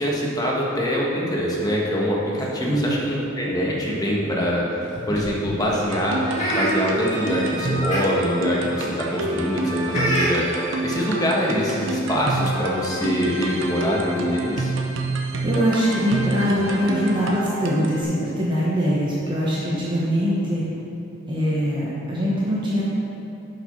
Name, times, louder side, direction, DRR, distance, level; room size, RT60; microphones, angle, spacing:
voice 1, 0.0-14.7, equal, 20° left, -4 dB, 1.2 m, -24 dB
voice 2, 2.7-3.0 15.4-20.6 21.3-22.8, equal, 20° right, -7 dB, 1.0 m, -22 dB
sound 1, 4.8-5.4 6.3-6.7 7.3-7.4 7.7-8.0 8.7-8.9 9.9-10.3 11.2-11.3 11.6-11.8, equal, 35° left, 2.0 m, -26 dB
sound 2, 5.7-18.0, right 2 dB, 65° right, 0.8 m, -28 dB
7.5 x 5.9 x 5.5 m, 2.8 s
head